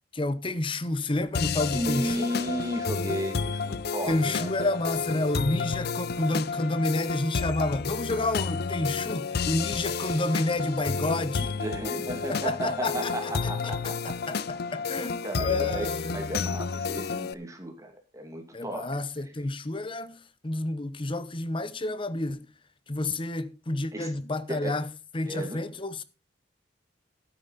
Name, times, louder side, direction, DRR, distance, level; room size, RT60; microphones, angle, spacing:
voice 1, 0.1-2.3 4.1-11.6 12.3-13.9 14.3-16.3 18.5-22.5 22.9-26.0, left 2 dB, 30° left, 0.8 m, -30 dB
sound 1, 1.3-17.3, left 5 dB, 60° left, 0.5 m, -31 dB
voice 2, 1.7-4.7 11.6-14.2 15.2-18.9 23.9-24.1 24.5-24.8 25.3-25.6, right 1 dB, 15° right, 2.5 m, -34 dB
12.5 x 9.2 x 4.2 m
head